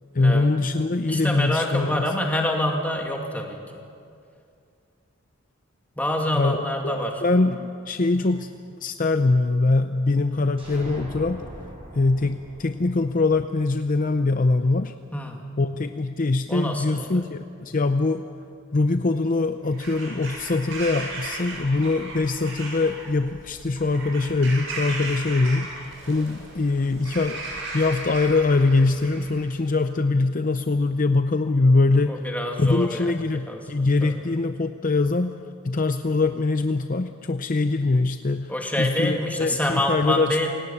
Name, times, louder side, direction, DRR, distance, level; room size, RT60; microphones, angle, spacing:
voice 1, 0.1-2.0 6.3-8.5 8.8-11.4 11.9-14.9 15.6-18.2 18.7-25.7 26.1-32.2 32.6-35.3 35.6-38.5 38.8-40.5, left 3 dB, 40° left, 8 dB, 0.6 m, -23 dB
voice 2, 1.1-3.8 6.0-7.2 8.2-8.3 15.1-15.4 16.5-17.3 32.0-33.1 33.5-34.2 38.5-40.5, left 1 dB, 10° left, 1 dB, 2.5 m, -27 dB
sound 1, 10.6-14.3, equal, 30° right, 7.5 m, -41 dB
Bird vocalization bird call bird song / Crow, 19.6-29.5, right 2 dB, 70° right, 7.8 m, -36 dB
27.5 x 18.0 x 7.2 m, 2.4 s
head